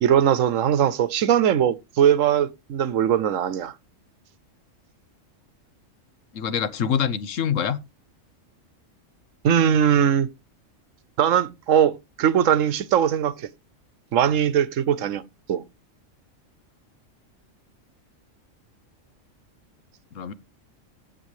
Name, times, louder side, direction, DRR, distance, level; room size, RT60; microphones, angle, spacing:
voice 1, 0.0-3.7 9.4-10.3 11.2-13.5 14.1-15.2 15.5-15.6, right 9 dB, 80° right, 1.1 m, -20 dB
voice 2, 6.3-7.8 20.1-20.3, left 8 dB, 75° left, 1.2 m, -25 dB
15.5 x 7.5 x 3.2 m
omnidirectional pair, 1.3 m